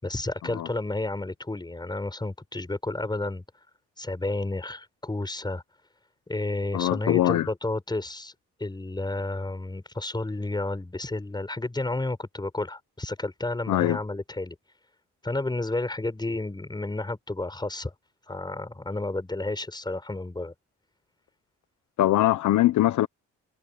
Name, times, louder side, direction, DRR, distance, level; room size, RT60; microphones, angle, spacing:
voice 1, 0.0-3.4 4.0-5.6 6.3-8.3 8.6-14.6 15.2-17.9 18.3-20.5, left 2 dB, 15° left, 6.3 m, -31 dB
voice 2, 6.7-7.5 13.7-14.0 22.0-23.1, left 14 dB, 75° left, 1.2 m, -22 dB
cardioid pair, 90°, 30 cm